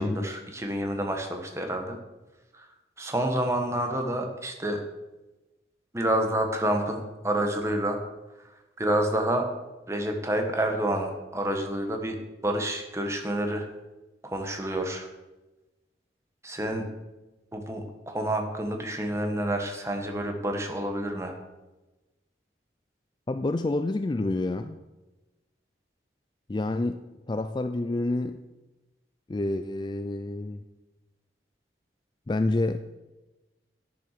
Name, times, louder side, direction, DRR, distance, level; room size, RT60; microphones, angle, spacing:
voice 1, 0.0-2.0 2.5-2.7 3.0-4.8 5.9-7.0 7.2-8.0 8.8-9.4 9.9-13.7 14.2-15.1 16.4-16.9 17.5-21.4, right 1 dB, 15° right, 4 dB, 1.3 m, -28 dB
voice 2, 23.3-24.8 26.5-27.0 27.3-28.4 29.3-30.6 32.3-33.0, left 2 dB, 25° left, 9 dB, 0.3 m, -28 dB
10.5 x 7.0 x 6.6 m, 1.1 s
head